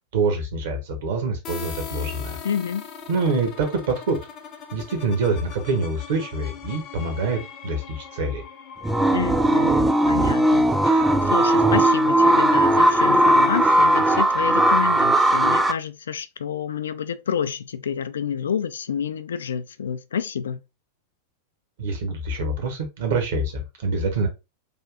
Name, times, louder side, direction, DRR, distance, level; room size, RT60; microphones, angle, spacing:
voice 1, 0.1-2.4 3.1-4.2 4.7-8.4 21.8-24.3, right 3 dB, 55° right, 1.2 m, -25 dB
sound 1, 1.4-11.0, left 6 dB, 35° left, 0.7 m, -41 dB
voice 2, 2.4-2.9 9.1-20.6, left 8 dB, 65° left, 0.3 m, -29 dB
sound 2, 8.8-15.7, right 1 dB, 5° right, 0.4 m, -18 dB
3.4 x 2.6 x 3.4 m
figure-of-eight pair, 90°, 0 cm